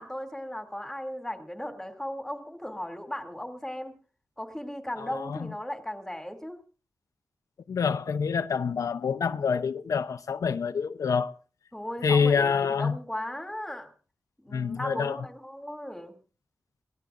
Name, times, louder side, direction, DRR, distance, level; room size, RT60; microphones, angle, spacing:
voice 1, 0.0-4.0 4.4-6.6 11.7-13.9 14.4-16.2, left 1 dB, 5° left, 2.6 m, -37 dB
voice 2, 5.0-5.4 7.7-11.3 12.0-13.0 14.5-15.2, left 6 dB, 80° left, 0.6 m, -26 dB
23.5 x 18.0 x 2.5 m
wide cardioid pair, 160°, 6 cm